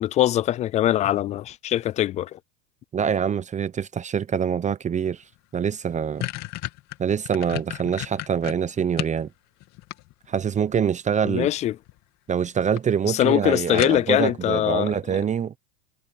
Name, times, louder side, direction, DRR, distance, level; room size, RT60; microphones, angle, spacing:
voice 1, 0.0-2.4 11.2-11.8 13.1-15.2, left 13 dB, 20° left, 0.3 m, -22 dB
voice 2, 2.9-5.2 5.5-6.3 7.0-9.3 10.3-11.5 12.3-15.5, right 7 dB, 20° right, 0.9 m, -25 dB
sound 1, 5.3-5.4 5.7-9.2 9.6-10.5 11.6-12.0 12.3-12.4 12.8-12.9 13.2-13.3 13.8-14.3, left 18 dB, 45° left, 2.8 m, -33 dB
hypercardioid pair, 115°, 39 cm